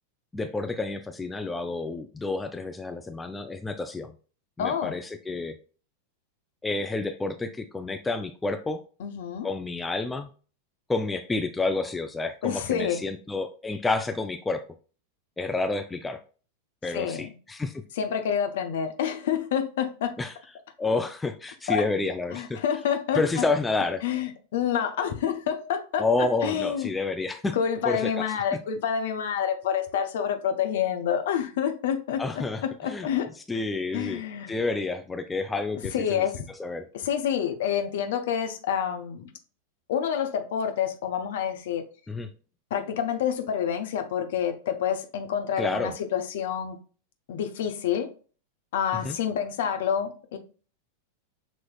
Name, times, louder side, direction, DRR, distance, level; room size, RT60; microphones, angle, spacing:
voice 1, 0.3-4.1 4.6-5.6 6.6-8.8 9.4-10.3 10.9-14.6 15.4-16.2 16.8-17.7 20.2-20.3 20.8-22.6 23.2-24.0 26.0-27.5 27.9-28.6 32.2-33.1 33.5-34.2 34.5-36.3 36.6-36.9 42.1-42.3 45.6-45.9 49.0-49.2, left 3 dB, 10° left, 0.4 m, -29 dB
voice 2, 4.6-4.9 9.0-9.5 12.4-13.0 16.9-17.3 18.0-20.1 21.7-21.8 22.3-23.4 24.0-26.1 26.4-26.9 27.5-33.6 33.9-34.5 35.9-36.5 36.9-39.3 39.9-41.9 42.7-46.8 47.3-48.1 48.7-50.4, left 8 dB, 55° left, 0.7 m, -28 dB
6.2 x 3.0 x 2.3 m
figure-of-eight pair, 90°, 0 cm